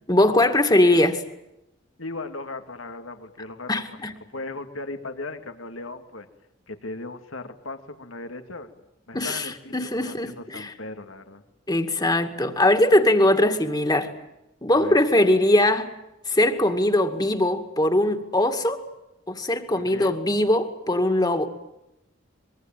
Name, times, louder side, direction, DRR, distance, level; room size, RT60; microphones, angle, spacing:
voice 1, 0.1-1.2 3.7-4.1 9.1-10.7 11.7-14.1 14.6-15.9 16.3-18.8 19.3-21.5, left 1 dB, 20° left, 6 dB, 2.2 m, -21 dB
voice 2, 2.0-4.0 4.3-6.3 6.7-8.7 9.1-11.4 14.7-15.0 19.8-20.1, left 2 dB, 90° left, 7 dB, 2.4 m, -37 dB
24.0 x 23.0 x 9.2 m, 0.89 s
head